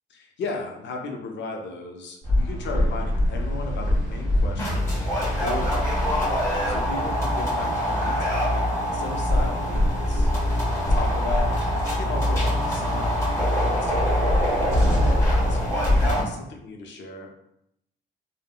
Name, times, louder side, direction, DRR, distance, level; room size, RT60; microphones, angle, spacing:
voice 1, 0.1-4.9 5.2-6.3 6.7-10.3 10.8-11.6 12.0-14.5 14.9-17.3, left 3 dB, 65° left, 2 dB, 0.6 m, -36 dB
sound 1, 2.2-16.2, equal, 15° left, 1.2 m, -23 dB
3.4 x 2.0 x 2.2 m, 0.76 s
cardioid pair, 90°, 20 cm